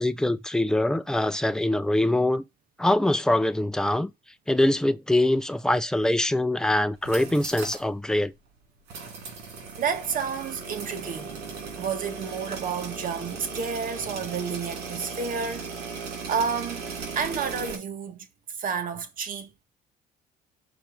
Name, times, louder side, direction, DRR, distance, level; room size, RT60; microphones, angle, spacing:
voice 1, 0.0-2.4 2.8-4.1 4.5-8.3, left 1 dB, 5° left, 0.7 m, -23 dB
sound 1, 6.9-7.9 8.2-8.3 8.9-17.8, right 4 dB, 85° right, 3.0 m, -37 dB
voice 2, 9.8-11.4 11.8-15.7 16.3-16.8 17.2-18.3 18.6-19.5, right 6 dB, 55° right, 1.7 m, -30 dB
5.9 x 4.6 x 5.2 m
cardioid pair, 110°, 17 cm